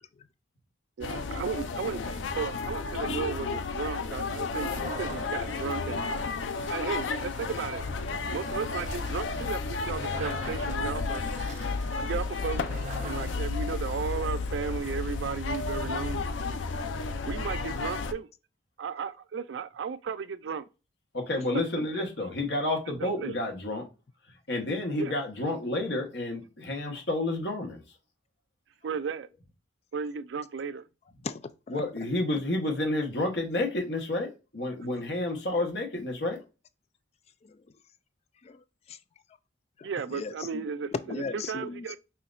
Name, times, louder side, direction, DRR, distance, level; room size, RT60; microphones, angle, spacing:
sound 1, 1.0-18.1, left 4 dB, 90° left, 0.5 m, -32 dB
voice 1, 1.0-6.0 6.7-7.9 8.3-11.2 12.0-12.6 13.0-16.2 17.2-18.3 18.8-20.7 21.9-22.1 22.9-23.4 25.0-25.1 28.8-29.3 29.9-30.9 39.8-42.0, right 6 dB, 70° right, 0.4 m, -35 dB
sound 2, 4.4-13.8, right 2 dB, 40° right, 1.0 m, -44 dB
voice 2, 21.1-23.8 24.5-27.8 31.7-36.4, left 2 dB, 60° left, 1.3 m, -30 dB
voice 3, 31.2-31.7 37.4-37.6 38.4-39.0 39.8-40.6 40.9-41.8, left 4 dB, 35° left, 0.3 m, -37 dB
5.6 x 2.8 x 2.5 m
head